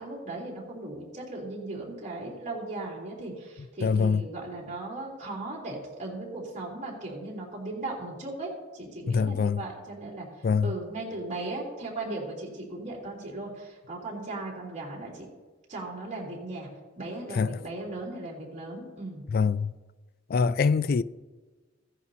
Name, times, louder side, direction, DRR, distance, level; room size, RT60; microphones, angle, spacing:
voice 1, 0.0-10.3 10.6-15.3 15.7-16.7 17.0-19.3, right 2 dB, 40° right, 3.3 m, -37 dB
voice 2, 3.8-4.3 9.1-9.6 10.4-10.7 17.4-17.6 19.3-19.7 20.3-21.0, left 5 dB, 50° left, 0.3 m, -24 dB
16.5 x 11.0 x 2.8 m
head